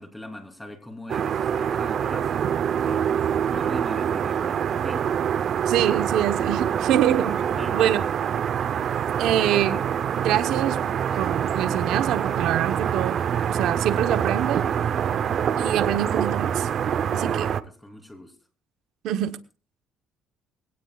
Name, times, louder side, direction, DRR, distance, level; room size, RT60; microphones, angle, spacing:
voice 1, 0.0-2.3 2.8-3.1 3.5-5.1 7.6-8.0 14.9-15.4 17.1-18.3, left 1 dB, 10° left, 5 dB, 3.2 m, -40 dB
sound 1, 1.1-17.6, right 8 dB, 50° right, 0.7 m, -25 dB
voice 2, 5.7-7.4 7.7-8.0 9.2-9.8 10.2-10.8 11.2-14.7 15.6-16.7 17.1-17.5 19.0-19.4, right 11 dB, 75° right, 11 dB, 1.0 m, -25 dB
22.0 x 17.5 x 2.4 m, 0.34 s
cardioid pair, 120°, 0 cm